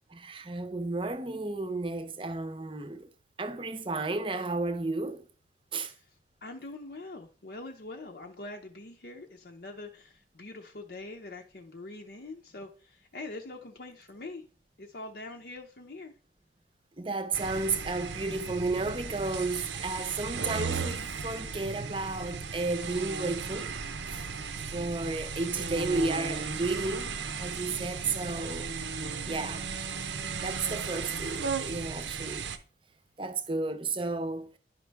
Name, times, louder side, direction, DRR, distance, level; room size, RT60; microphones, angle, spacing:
voice 1, 0.1-3.1 3.4-5.3 5.7-5.9 17.0-23.7 24.1-24.2 24.7-28.7 29.2-29.7 30.4-32.5 33.2-34.6, right 3 dB, 30° right, 0.7 m, -33 dB
voice 2, 5.8-14.5 14.8-16.1, left 2 dB, 60° left, 0.7 m, -44 dB
sound 1, 17.3-32.6, right 5 dB, 85° right, 0.8 m, -36 dB
11.0 x 5.3 x 3.4 m
head